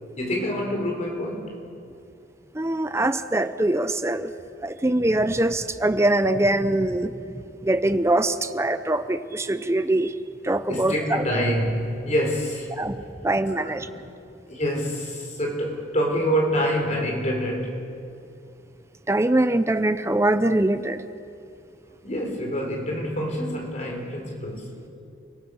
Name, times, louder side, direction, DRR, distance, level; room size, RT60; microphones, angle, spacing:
voice 1, 0.2-1.5 10.7-12.7 13.6-14.0 14.5-17.8 22.0-24.9, equal, 35° left, 1 dB, 4.1 m, -26 dB
voice 2, 2.5-4.3 4.6-7.3 7.6-10.2 10.4-11.2 12.8-13.9 19.1-21.0, right 1 dB, 15° right, 11 dB, 0.6 m, -23 dB
29.5 x 18.0 x 6.4 m, 2.6 s
head